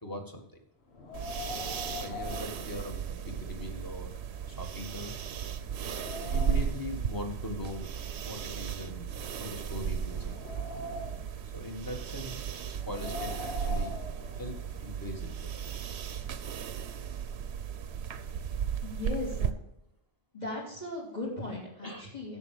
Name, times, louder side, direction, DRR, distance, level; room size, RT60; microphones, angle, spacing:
voice 1, 0.0-0.6 1.5-5.1 6.2-7.9 8.3-9.1 9.4-10.5 11.5-12.5 12.9-14.0 14.4-15.9 21.8-22.1, left 1 dB, 20° left, 3 dB, 1.8 m, -41 dB
Wind, 0.9-3.5 3.9-4.0 4.7-4.8 5.2-6.9 7.7-9.2 9.8-11.4 12.7-14.8, left 3 dB, 75° left, 1.8 m, -43 dB
sound 1, 1.1-19.5, right 7 dB, 80° right, 1.0 m, -35 dB
voice 2, 18.8-19.5 20.3-22.4, left 2 dB, 40° left, -2 dB, 3.6 m, -37 dB
11.0 x 7.2 x 6.6 m, 0.80 s
omnidirectional pair, 1.1 m